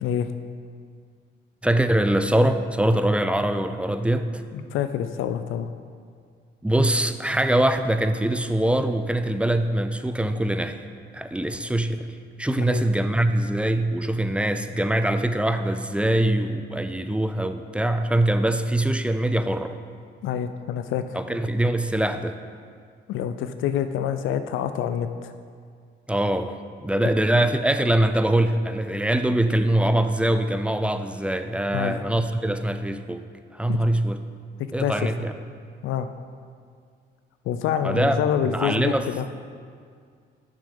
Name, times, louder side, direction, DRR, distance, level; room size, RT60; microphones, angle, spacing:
voice 1, 1.6-4.4 6.6-10.9 11.1-12.1 12.4-19.8 21.1-22.4 26.1-33.2 33.5-34.2 34.7-35.3 37.8-38.2 38.5-39.1, right 1 dB, 5° right, 9 dB, 0.4 m, -23 dB
voice 2, 4.5-5.7 12.7-12.8 20.2-21.2 23.1-25.3 31.7-32.0 33.7-33.8 34.8-35.1 35.8-36.1 37.5-39.3, left 9 dB, 85° left, 9 dB, 0.4 m, -27 dB
6.8 x 6.6 x 5.4 m, 2.1 s
cardioid pair, 90°, 20 cm